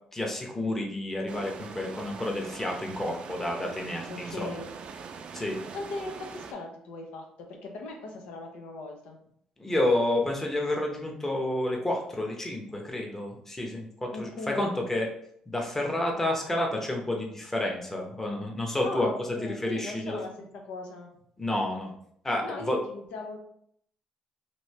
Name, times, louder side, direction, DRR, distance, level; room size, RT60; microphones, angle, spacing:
voice 1, 0.1-4.5 5.3-5.6 9.6-15.1 15.5-20.2 21.4-21.9 22.2-22.8, left 1 dB, 15° left, 1 dB, 0.8 m, -30 dB
sound 1, 1.3-6.5, right 5 dB, 55° right, 0.4 m, -42 dB
voice 2, 4.1-4.7 5.7-9.2 14.1-14.8 18.8-21.1 22.4-23.4, left 2 dB, 90° left, 2 dB, 0.6 m, -39 dB
3.1 x 2.6 x 3.1 m, 0.67 s
cardioid pair, 100°, 2 cm